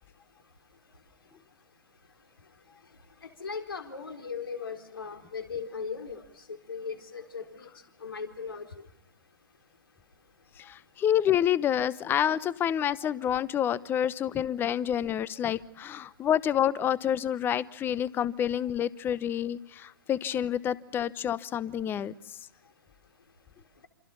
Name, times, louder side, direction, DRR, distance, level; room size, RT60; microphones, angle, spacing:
voice 1, 3.4-6.2 6.7-7.7 8.0-8.6, left 5 dB, 75° left, 4 dB, 4.0 m, -37 dB
voice 2, 10.6-22.1, left 10 dB, 15° left, 19 dB, 0.9 m, -28 dB
27.5 x 27.0 x 5.6 m, 0.76 s
figure-of-eight pair, 125°, 12 cm